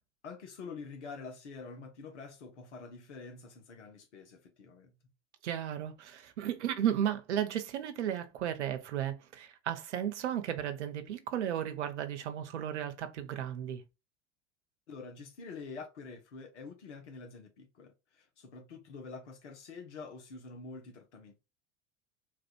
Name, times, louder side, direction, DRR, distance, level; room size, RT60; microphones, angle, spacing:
voice 1, 0.2-4.9 14.9-21.4, left 4 dB, 70° left, 1.1 m, -47 dB
voice 2, 5.4-13.8, right 10 dB, 65° right, 0.9 m, -34 dB
4.0 x 2.5 x 4.4 m
figure-of-eight pair, 80°, 37 cm